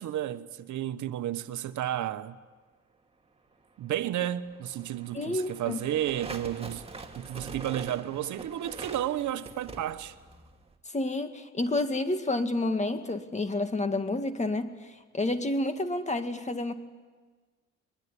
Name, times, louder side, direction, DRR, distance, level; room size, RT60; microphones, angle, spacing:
voice 1, 0.0-2.4 3.8-6.8 7.2-10.1, right 12 dB, 75° right, 1.1 m, -32 dB
sound 1, 4.0-10.7, right 3 dB, 20° right, 2.4 m, -44 dB
voice 2, 5.1-5.8 10.9-14.7 15.1-16.7, left 2 dB, 25° left, 2.0 m, -29 dB
22.0 x 22.0 x 9.9 m
cardioid pair, 90°, 30 cm